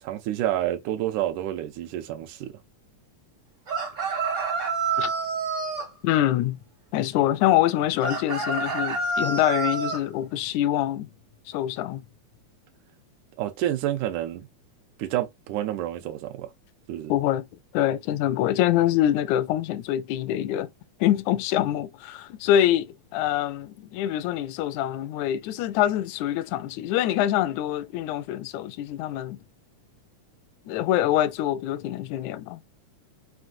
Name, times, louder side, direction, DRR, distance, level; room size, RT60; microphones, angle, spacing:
voice 1, 0.0-2.5 13.4-14.5 15.0-16.5 16.9-17.1, right 13 dB, 90° right, 2.1 m, -29 dB
sound 1, 3.7-5.9 8.0-10.0, right 4 dB, 55° right, 0.8 m, -28 dB
voice 2, 6.0-6.6 6.9-11.1 11.5-12.0 17.1-17.5 17.7-20.7 21.0-29.4 30.7-32.7, left 12 dB, 80° left, 1.8 m, -25 dB
5.8 x 2.5 x 2.6 m
omnidirectional pair, 3.5 m